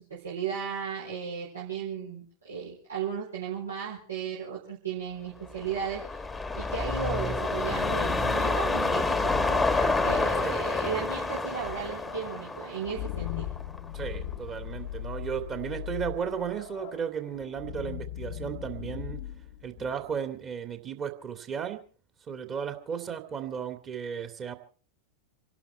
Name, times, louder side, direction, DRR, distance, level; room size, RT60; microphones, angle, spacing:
voice 1, 0.0-6.2 6.5-13.5, right 7 dB, 70° right, -4 dB, 4.0 m, -35 dB
sound 1, 5.5-13.9 14.3-14.4, left 3 dB, 10° left, 1.4 m, -28 dB
sound 2, 7.6-20.3, left 13 dB, 50° left, 1.0 m, -40 dB
voice 2, 13.9-19.2 19.6-21.8 22.3-24.6, right 7 dB, 25° right, 6 dB, 2.5 m, -34 dB
27.5 x 12.0 x 4.4 m, 0.40 s
figure-of-eight pair, 90°, 0 cm